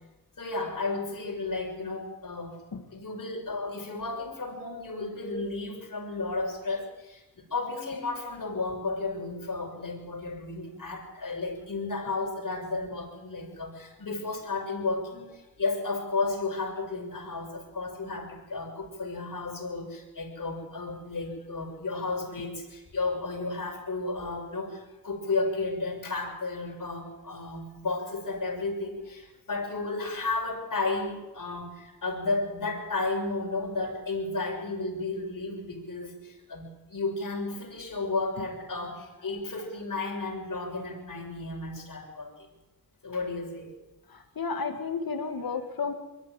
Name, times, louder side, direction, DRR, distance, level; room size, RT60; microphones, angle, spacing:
voice 1, 0.4-2.6 2.9-42.5 43.0-43.7, left 3 dB, 65° left, 0 dB, 6.4 m, -33 dB
voice 2, 44.1-45.9, left 5 dB, 80° left, 6 dB, 2.2 m, -32 dB
22.5 x 14.0 x 9.2 m, 1.1 s
cardioid pair, 45°, 35 cm